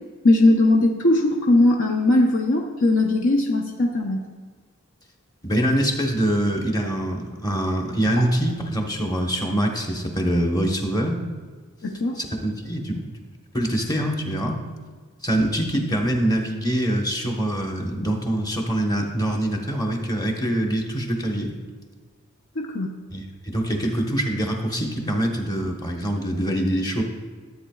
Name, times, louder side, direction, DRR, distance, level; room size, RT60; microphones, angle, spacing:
voice 1, 0.2-4.2 11.8-12.1 22.6-23.0, left 2 dB, 60° left, 1 dB, 0.7 m, -19 dB
voice 2, 5.4-11.2 12.2-13.0 13.5-14.6 15.2-21.5 23.1-27.0, right 1 dB, 20° left, 1 dB, 1.1 m, -24 dB
13.5 x 8.5 x 2.3 m, 1.5 s
head